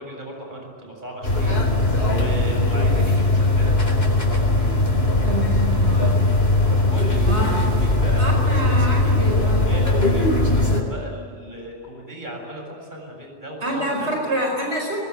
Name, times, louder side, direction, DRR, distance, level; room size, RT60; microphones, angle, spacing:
voice 1, 0.0-4.4 6.6-14.1, right 1 dB, 45° right, 1 dB, 7.5 m, -35 dB
sound 1, 1.2-10.8, left 2 dB, 65° left, 4.4 m, -19 dB
voice 2, 5.2-6.1 7.3-7.6 8.2-9.7 13.6-15.0, right 1 dB, 85° right, 0 dB, 5.2 m, -27 dB
23.0 x 23.0 x 9.6 m, 2.1 s
omnidirectional pair, 1.1 m